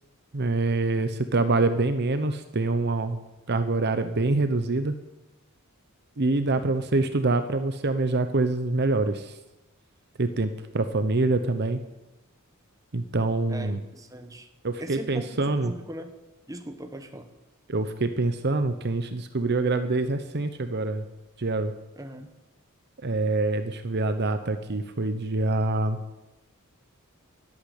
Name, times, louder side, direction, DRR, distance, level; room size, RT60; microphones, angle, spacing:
voice 1, 0.3-3.2 3.5-4.9 6.2-9.3 10.2-11.8 12.9-13.8 14.6-15.7 17.7-21.0 21.4-21.7 23.0-26.0, right 2 dB, 50° right, 9 dB, 0.8 m, -25 dB
voice 2, 13.5-14.5 14.8-15.3 15.6-16.1 16.5-17.3 22.0-22.3, right 1 dB, 15° right, 6 dB, 1.3 m, -39 dB
12.0 x 11.5 x 8.4 m, 0.99 s
head